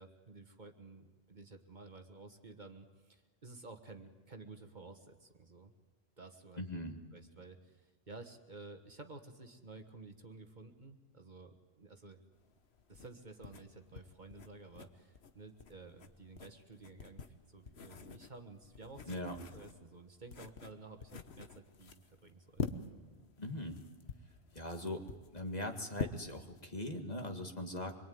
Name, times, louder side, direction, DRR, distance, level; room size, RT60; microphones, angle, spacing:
voice 1, 0.0-5.7 6.2-6.6 7.1-12.2 12.9-19.1 19.5-22.7, right 3 dB, 45° right, 5 dB, 1.6 m, -53 dB
voice 2, 6.6-7.0 19.1-19.4 23.4-23.8 24.5-25.0 25.3-27.9, left 1 dB, 40° left, 4 dB, 2.1 m, -40 dB
sound 1, 12.3-26.6, left 5 dB, 75° left, 1.4 m, -46 dB
25.0 x 22.5 x 9.4 m, 1.2 s
omnidirectional pair, 1.1 m